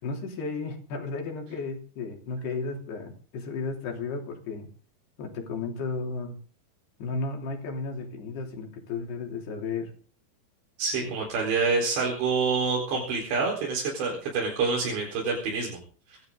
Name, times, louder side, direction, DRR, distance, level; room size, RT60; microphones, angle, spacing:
voice 1, 0.0-4.7 5.2-6.4 7.0-9.9 11.0-11.1, left 4 dB, 70° left, 2 dB, 5.1 m, -34 dB
voice 2, 10.8-15.8, right 4 dB, 90° right, -2 dB, 6.6 m, -27 dB
24.5 x 12.5 x 3.9 m, 0.40 s
omnidirectional pair, 4.9 m